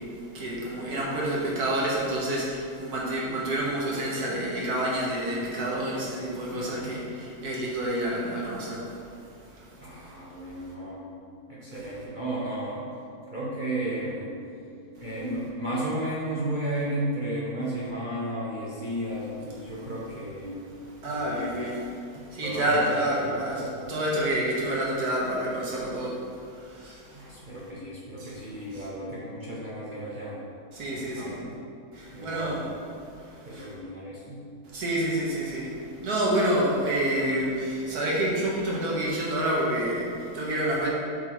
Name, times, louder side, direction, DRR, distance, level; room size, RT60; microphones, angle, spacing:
voice 1, 0.0-10.0 11.7-11.8 19.7-19.9 20.9-27.4 28.2-28.4 28.7-28.9 30.7-31.5 31.9-32.7 33.1-33.7 34.7-40.9, right 1 dB, 80° right, -4 dB, 1.7 m, -29 dB
voice 2, 6.5-6.9 9.8-11.0 11.5-12.8 13.3-14.3 15.0-20.5 21.0-21.5 22.1-22.9 23.2-23.8 27.1-30.4 30.9-31.5 32.1-32.6 33.5-34.4, right 1 dB, 35° right, -7 dB, 1.1 m, -33 dB
7.9 x 4.5 x 4.6 m, 2.5 s
omnidirectional pair, 1.6 m